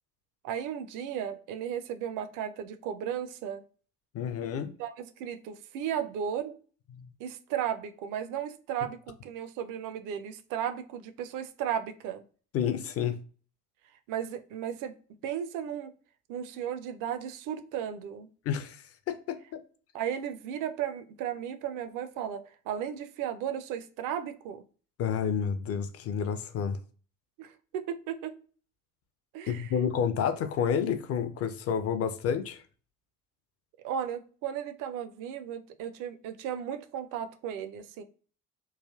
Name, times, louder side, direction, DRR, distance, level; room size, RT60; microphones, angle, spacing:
voice 1, 0.4-3.6 4.8-6.6 7.2-12.2 14.1-15.0 15.2-15.9 16.3-18.3 19.9-24.6 27.4-28.4 29.3-29.7 33.8-38.0, right 9 dB, 45° right, 0.5 m, -35 dB
voice 2, 4.1-4.7 7.0-7.1 12.5-13.2 18.5-19.6 25.0-26.8 29.5-32.6, left 7 dB, 35° left, 0.5 m, -30 dB
3.2 x 2.3 x 2.3 m
figure-of-eight pair, 55°, 45 cm